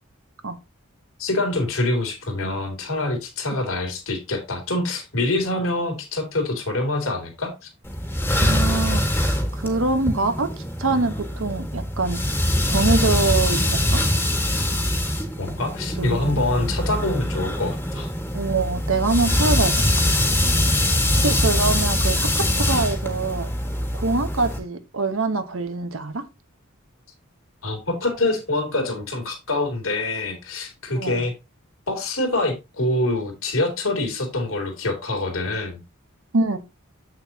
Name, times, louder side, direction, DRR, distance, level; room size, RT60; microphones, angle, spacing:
voice 1, 1.2-7.7 15.4-18.1 27.6-31.3 31.9-35.8, left 2 dB, 75° left, 3.0 m, -25 dB
sound 1, 7.8-24.6, left 1 dB, 10° left, 1.6 m, -23 dB
voice 2, 8.4-10.5 10.8-12.2 12.6-14.0 16.0-16.4 18.3-19.7 21.2-23.5 23.9-26.2 31.0-31.3 36.3-36.6, right 3 dB, 70° right, 1.2 m, -24 dB
8.3 x 6.5 x 2.9 m
head